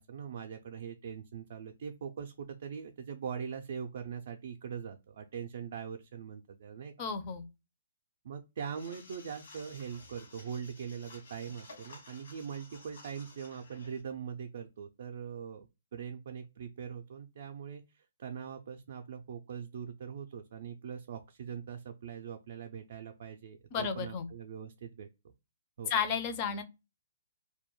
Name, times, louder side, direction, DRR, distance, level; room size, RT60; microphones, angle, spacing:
voice 1, 0.0-6.9 8.2-25.1 25.8-25.9, right 7 dB, 55° right, 0.3 m, -42 dB
voice 2, 7.0-7.4 23.7-24.3 25.9-26.6, left 6 dB, 30° left, 0.4 m, -32 dB
sound 1, 8.7-14.0, left 3 dB, 65° left, 1.1 m, -54 dB
2.2 x 2.1 x 2.9 m
hypercardioid pair, 155°, 0 cm